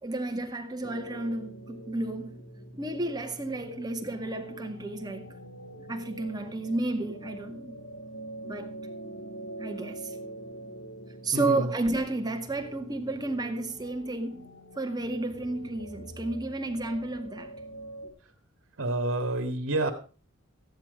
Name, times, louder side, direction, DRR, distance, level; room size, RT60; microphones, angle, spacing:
voice 1, 0.0-2.4 2.7-5.3 5.9-7.8 8.4-8.7 9.6-10.2 11.2-14.5 14.8-17.5, right 2 dB, 20° right, 1.9 m, -32 dB
sound 1, 0.8-18.1, right 1 dB, 70° left, 4.1 m, -44 dB
voice 2, 18.8-19.9, right 2 dB, 65° right, 1.9 m, -28 dB
14.5 x 10.5 x 5.1 m
head